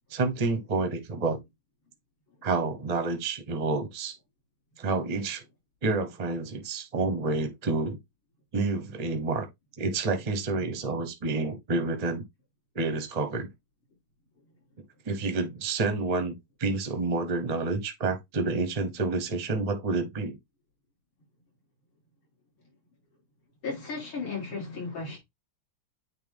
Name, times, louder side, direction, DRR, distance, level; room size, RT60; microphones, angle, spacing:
voice 1, 0.1-1.4 2.4-4.1 4.8-5.4 5.8-8.0 8.5-9.5 9.8-12.2 12.7-13.5 15.1-20.4, right 3 dB, 35° right, 0.6 m, -29 dB
voice 2, 23.6-25.2, left 4 dB, 70° left, 4.6 m, -34 dB
8.7 x 3.2 x 3.4 m
omnidirectional pair, 2.4 m